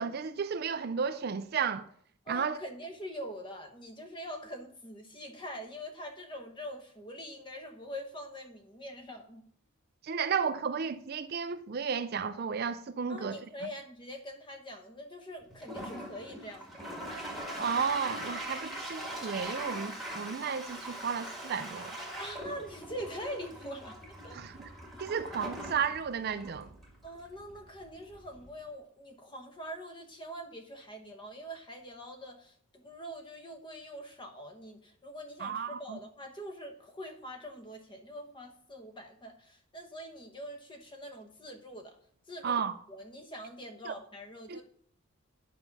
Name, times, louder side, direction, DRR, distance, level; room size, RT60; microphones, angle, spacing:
voice 1, 0.0-1.9 2.3-2.6 10.0-13.4 17.6-22.0 24.3-24.6 25.0-26.7 35.4-36.0 42.4-42.7 43.8-43.9 44.5-44.6, right 6 dB, 50° right, 0.4 m, -33 dB
voice 2, 2.3-9.4 13.1-16.7 22.2-24.0 24.2-24.4 27.0-42.0 42.3-42.6 42.9-44.6, equal, 25° left, 1.1 m, -44 dB
Toilet flush, 15.5-28.6, right 1 dB, ahead, 1.7 m, -42 dB
9.0 x 5.4 x 6.0 m
head